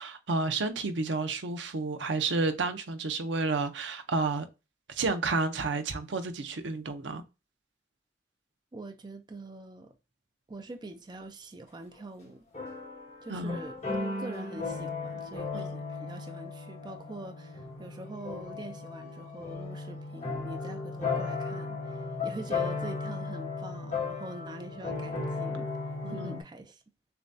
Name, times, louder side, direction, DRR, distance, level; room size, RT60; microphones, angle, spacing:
voice 1, 0.0-4.5 4.9-7.2 13.3-13.6 15.5-15.7 26.0-26.4, right 3 dB, 80° right, 0.7 m, -31 dB
voice 2, 8.7-10.0 10.5-12.4 13.2-13.7 14.2-26.8, right 2 dB, 25° right, 0.4 m, -44 dB
sound 1, 12.0-12.1 12.5-26.4, left 4 dB, 35° left, 1.7 m, -36 dB
6.8 x 2.3 x 2.6 m
head